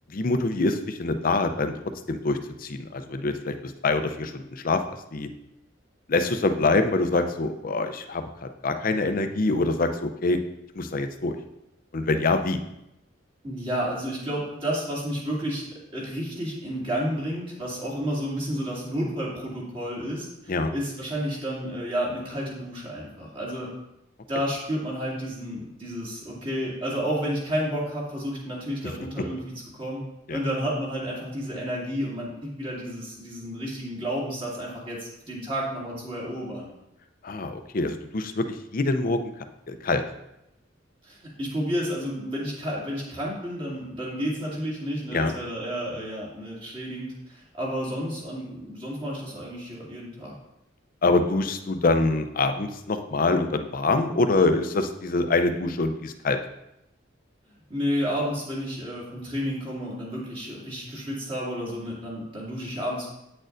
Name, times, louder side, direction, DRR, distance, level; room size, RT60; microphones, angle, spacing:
voice 1, 0.1-1.7 2.1-4.8 5.1-5.3 6.1-10.4 10.8-11.4 11.9-12.6 20.5-20.7 30.3-30.4 37.2-38.4 38.7-39.2 39.7-40.0 45.1-45.3 51.0-56.4, left 3 dB, 45° left, 7 dB, 0.5 m, -25 dB
voice 2, 13.4-15.7 15.9-23.7 24.3-29.4 29.7-30.0 30.3-36.7 41.0-50.3 57.7-63.1, equal, 30° right, -6 dB, 2.2 m, -31 dB
9.0 x 6.5 x 2.5 m, 0.86 s
head